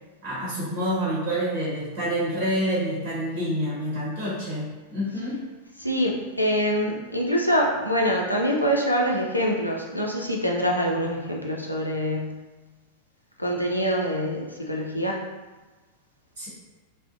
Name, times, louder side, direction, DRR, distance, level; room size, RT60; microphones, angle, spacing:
voice 1, 0.2-5.5 16.4-16.5, equal, 45° right, -8 dB, 1.0 m, -28 dB
voice 2, 5.8-12.4 13.4-15.2, equal, 85° left, -1 dB, 0.4 m, -25 dB
2.4 x 2.0 x 2.5 m, 1.2 s
figure-of-eight pair, 90°, 0 cm